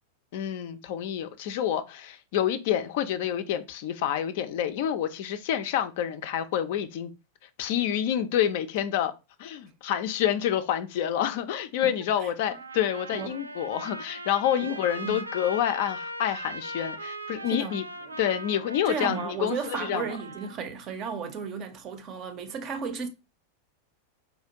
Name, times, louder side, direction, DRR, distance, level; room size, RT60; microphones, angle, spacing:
voice 1, 0.3-7.1 7.6-9.1 9.4-17.8 18.2-20.0, left 10 dB, 50° left, 0.4 m, -28 dB
voice 2, 11.8-12.3 13.1-13.4 14.6-14.7 15.0-15.3 17.5-18.2 18.9-23.1, right 5 dB, 35° right, 0.6 m, -34 dB
Trumpet, 12.4-20.6, right 1 dB, 80° right, 0.3 m, -39 dB
4.2 x 2.4 x 2.8 m
figure-of-eight pair, 90°, 0 cm